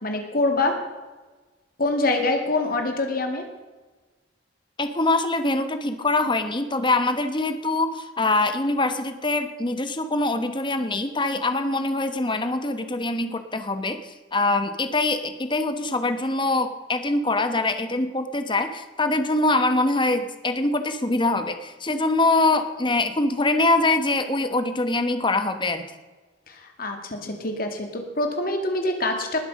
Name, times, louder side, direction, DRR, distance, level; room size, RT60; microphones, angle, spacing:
voice 1, 0.0-0.7 1.8-3.4 26.5-29.4, left 2 dB, 50° left, 4 dB, 2.4 m, -25 dB
voice 2, 4.8-25.8, left 2 dB, 25° left, 9 dB, 1.1 m, -24 dB
19.5 x 7.7 x 6.5 m, 1.3 s
head